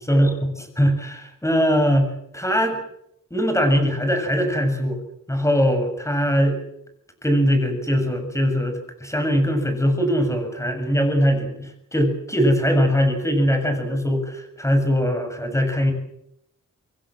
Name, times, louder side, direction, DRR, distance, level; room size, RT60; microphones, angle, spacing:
voice 1, 0.1-0.5 0.8-2.8 3.3-5.0 5.3-6.6 7.2-15.9, equal, 10° left, 6 dB, 7.1 m, -21 dB
27.0 x 22.5 x 7.7 m, 0.77 s
wide cardioid pair, 130°, 31 cm